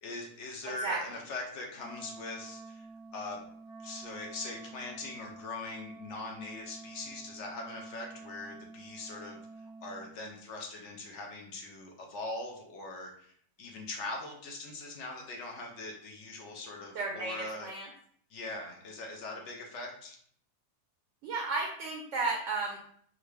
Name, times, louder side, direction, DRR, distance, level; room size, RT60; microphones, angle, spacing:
voice 1, 0.0-2.9 3.1-3.4 3.8-13.3 13.6-17.7 18.3-20.2, left 2 dB, 70° left, 1 dB, 0.7 m, -41 dB
Wind instrument woodwind instrument, 1.7-10.2, right 3 dB, 85° left, 1.5 m, -49 dB
voice 2, 16.9-17.9 21.2-22.9, right 3 dB, 65° right, -1 dB, 0.7 m, -33 dB
3.7 x 2.1 x 3.2 m, 0.62 s
omnidirectional pair, 1.7 m